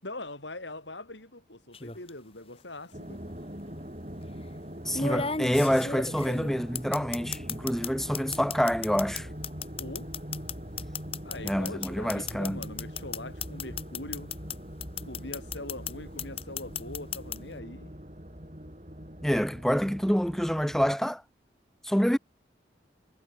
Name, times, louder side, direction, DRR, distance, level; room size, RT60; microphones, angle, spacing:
voice 1, 0.0-3.3 9.8-10.2 11.2-14.3 15.0-17.9, left 2 dB, 85° left, 7.4 m, -42 dB
sound 1, 1.7-2.1 3.3-3.4 4.9-7.9 8.1-14.5 14.8-15.9 16.2-17.4, left 5 dB, 30° left, 2.5 m, -34 dB
sound 2, 2.9-21.0, equal, 40° right, 6.1 m, -42 dB
voice 2, 4.8-9.3 11.4-12.6 19.2-21.2 21.8-22.2, equal, ahead, 0.9 m, -27 dB
head